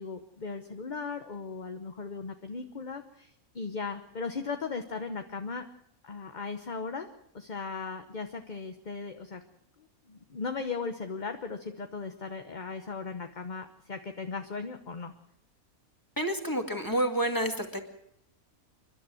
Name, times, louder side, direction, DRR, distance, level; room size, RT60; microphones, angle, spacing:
voice 1, 0.0-5.6 6.0-7.1 7.3-9.4 10.1-15.1, left 4 dB, 35° left, 7 dB, 1.0 m, -37 dB
voice 2, 16.2-17.8, right 1 dB, 15° left, 5 dB, 2.0 m, -29 dB
29.0 x 11.5 x 7.6 m, 0.76 s
omnidirectional pair, 1.5 m